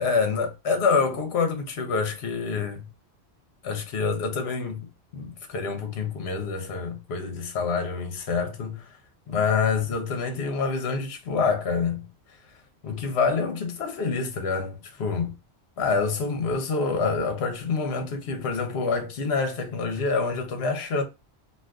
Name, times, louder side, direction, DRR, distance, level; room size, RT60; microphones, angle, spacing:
voice 1, 0.0-2.9 3.6-4.8 5.1-8.9 9.3-12.0 12.8-15.3 15.8-21.0, left 4 dB, 70° left, 1.0 m, -27 dB
2.6 x 2.5 x 3.4 m
omnidirectional pair, 1.1 m